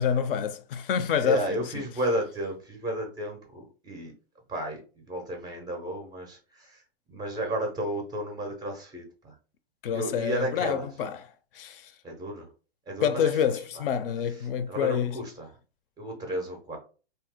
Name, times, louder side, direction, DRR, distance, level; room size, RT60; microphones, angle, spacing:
voice 1, 0.0-1.8 9.8-11.3 11.5-11.9 13.0-15.2, left 8 dB, 60° left, 0.4 m, -27 dB
voice 2, 1.2-4.1 4.5-4.8 5.1-6.8 7.1-9.3 9.9-10.8 12.0-12.5 12.9-13.3 14.7-15.5 16.0-16.8, right 1 dB, 15° right, 0.4 m, -32 dB
2.7 x 2.0 x 3.5 m
hypercardioid pair, 130°, 32 cm